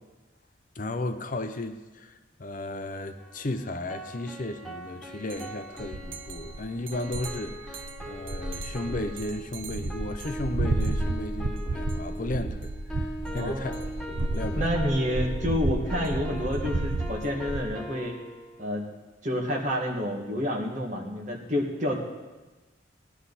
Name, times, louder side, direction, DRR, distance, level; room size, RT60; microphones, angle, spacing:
voice 1, 0.8-13.7 14.1-14.7, left 2 dB, 45° left, 8 dB, 0.7 m, -34 dB
sound 1, 3.2-18.7, equal, 5° left, 1.3 m, -41 dB
sound 2, 5.3-5.4 5.8-17.6, right 2 dB, 80° right, 0.7 m, -32 dB
voice 2, 13.3-13.8 14.6-18.2 18.6-18.8 19.2-22.1, equal, 40° right, -1 dB, 2.0 m, -29 dB
18.5 x 11.5 x 4.1 m, 1.2 s
head